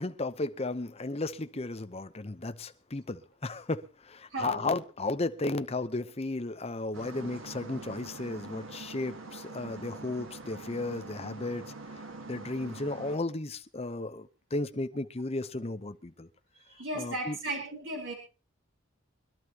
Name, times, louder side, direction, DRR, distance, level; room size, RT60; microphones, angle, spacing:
voice 1, 0.0-16.3 17.0-17.4, left 2 dB, 30° left, 0.8 m, -34 dB
voice 2, 4.3-4.6 16.7-18.1, right 1 dB, 70° right, 3.8 m, -35 dB
sound 1, 6.9-13.2, right 3 dB, 90° right, 1.7 m, -44 dB
25.0 x 12.0 x 2.9 m
head